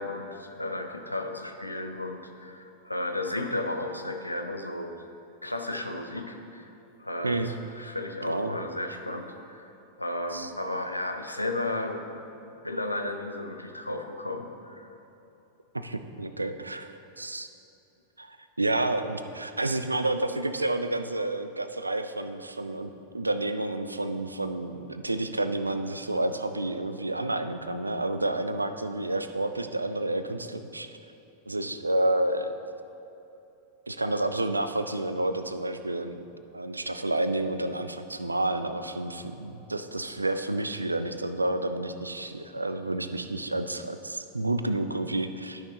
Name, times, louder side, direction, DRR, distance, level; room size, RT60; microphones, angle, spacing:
voice 1, 0.0-5.0 5.4-6.7 7.0-9.7 10.0-12.2 12.6-14.9, left 2 dB, 85° left, 5 dB, 0.5 m, -34 dB
voice 2, 8.2-8.5 10.3-10.5 15.7-17.5 18.2-22.9 23.1-30.9 31.5-32.5 33.9-36.2 36.5-45.6, right 2 dB, 80° right, 9 dB, 0.3 m, -30 dB
12.0 x 5.8 x 2.9 m, 2.9 s
figure-of-eight pair, 90°, 0 cm